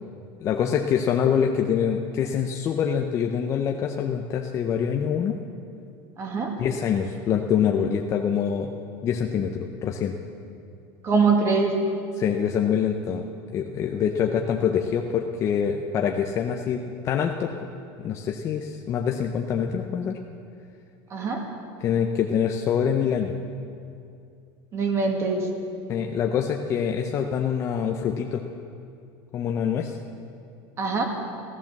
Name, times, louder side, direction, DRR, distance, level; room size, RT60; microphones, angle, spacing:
voice 1, 0.4-5.4 6.6-8.7 9.0-10.2 12.2-13.2 13.5-17.5 18.0-20.2 21.8-23.3 25.9-28.4 29.3-30.0, left 8 dB, 25° left, 2 dB, 0.6 m, -25 dB
voice 2, 6.2-6.5 11.0-11.8 21.1-21.4 24.7-25.5 30.8-31.1, right 4 dB, 25° right, 3 dB, 1.9 m, -23 dB
15.0 x 13.0 x 7.3 m, 2.5 s
cardioid pair, 170°, 10 cm